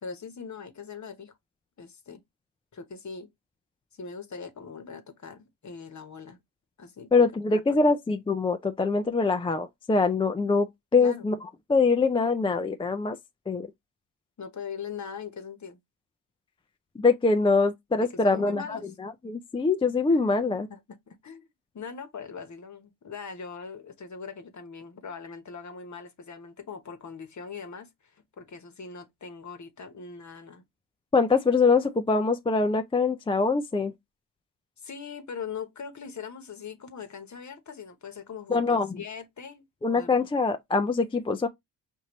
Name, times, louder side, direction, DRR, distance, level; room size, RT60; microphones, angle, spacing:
voice 1, 0.0-1.3 1.8-2.2 2.7-3.3 3.9-6.4 6.8-7.8 11.0-11.3 14.4-15.8 18.0-18.8 20.1-20.2 20.7-20.8 21.1-21.5 21.7-30.6 34.8-40.1, left 6 dB, 40° left, 1.0 m, -41 dB
voice 2, 7.1-10.7 10.9-11.4 11.7-13.2 13.5-13.7 17.0-20.7 31.1-33.9 38.5-39.0 39.8-41.5, left 4 dB, 15° left, 0.3 m, -24 dB
5.1 x 2.6 x 3.0 m
supercardioid pair, 50°, 46 cm